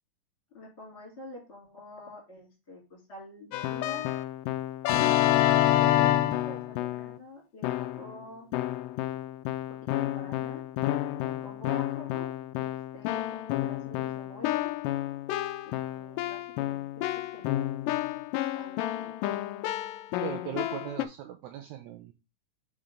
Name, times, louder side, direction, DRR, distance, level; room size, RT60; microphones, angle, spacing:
voice 1, 0.5-4.1 5.1-8.5 9.9-10.6 11.2-12.3 12.6-14.7 15.6-17.7 17.9-18.2 18.5-19.4, left 2 dB, 20° left, -1 dB, 2.5 m, -46 dB
Keyboard (musical), 3.5-7.2 7.6-8.1 8.5-21.0, left 14 dB, 85° left, 2.2 m, -29 dB
voice 2, 4.9-5.2 20.2-22.1, right 11 dB, 85° right, 5 dB, 1.7 m, -39 dB
5.0 x 4.3 x 5.0 m, 0.27 s
omnidirectional pair, 3.9 m